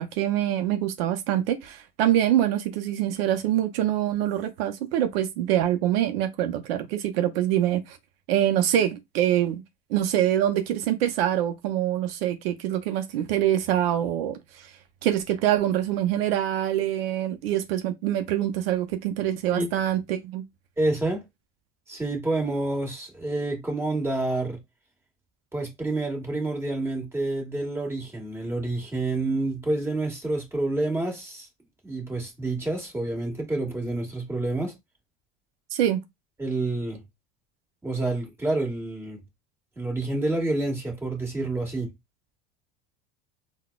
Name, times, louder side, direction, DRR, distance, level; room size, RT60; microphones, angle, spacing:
voice 1, 0.0-8.0 8.3-9.6 9.9-14.7 15.0-20.4 35.7-36.0, right 11 dB, 80° right, 0.6 m, -25 dB
voice 2, 20.8-21.2 21.9-24.6 25.5-31.5 31.8-34.7 36.4-37.0 37.8-39.2 39.7-41.9, right 2 dB, 10° right, 1.5 m, -28 dB
4.0 x 2.2 x 2.3 m
supercardioid pair, 95°, 29 cm